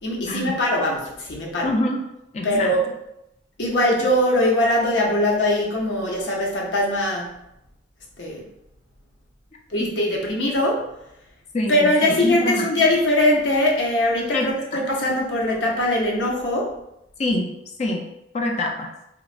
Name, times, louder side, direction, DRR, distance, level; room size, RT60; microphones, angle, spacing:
voice 1, 0.0-1.7 2.4-2.9 3.6-7.3 8.2-8.4 9.7-10.8 11.7-16.7, left 1 dB, 80° left, -2 dB, 0.7 m, -21 dB
voice 2, 1.6-2.0 2.3-2.7 9.8-9.9 11.5-12.7 14.3-14.5 17.2-17.5 17.8-18.0 18.3-18.9, left 1 dB, 40° left, 2 dB, 0.4 m, -25 dB
2.9 x 2.1 x 2.4 m, 0.82 s
head